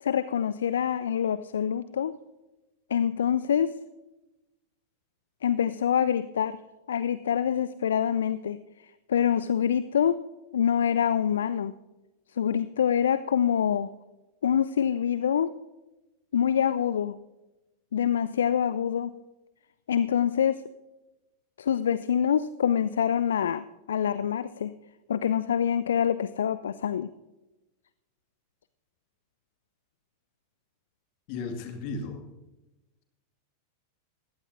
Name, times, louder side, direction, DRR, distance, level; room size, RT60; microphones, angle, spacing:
voice 1, 0.0-2.1 2.9-3.7 5.4-6.6 6.9-8.6 9.1-10.2 10.5-11.8 12.4-13.9 14.4-15.5 16.3-17.2 17.9-19.1 19.9-20.6 21.6-24.7 25.1-27.1, left 8 dB, 65° left, 15 dB, 0.3 m, -25 dB
voice 2, 31.3-32.2, left 3 dB, 45° left, 5 dB, 2.0 m, -34 dB
20.5 x 15.5 x 2.6 m, 1.0 s
figure-of-eight pair, 90°, 0 cm